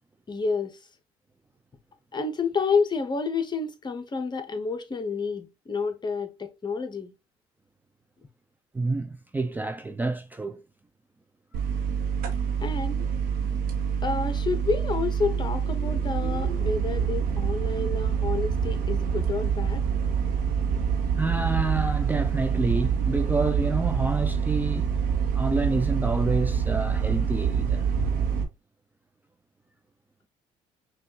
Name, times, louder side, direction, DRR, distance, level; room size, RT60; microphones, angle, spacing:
voice 1, 0.3-0.8 2.1-7.1 12.6-13.1 14.0-19.8, left 4 dB, 30° left, 1.0 m, -29 dB
voice 2, 8.7-10.6 21.2-24.9 25.3-27.8, right 3 dB, 10° right, 0.4 m, -28 dB
sound 1, 11.5-28.4, right 7 dB, 80° right, 1.0 m, -26 dB
5.3 x 2.5 x 2.8 m
supercardioid pair, 80°, 15 cm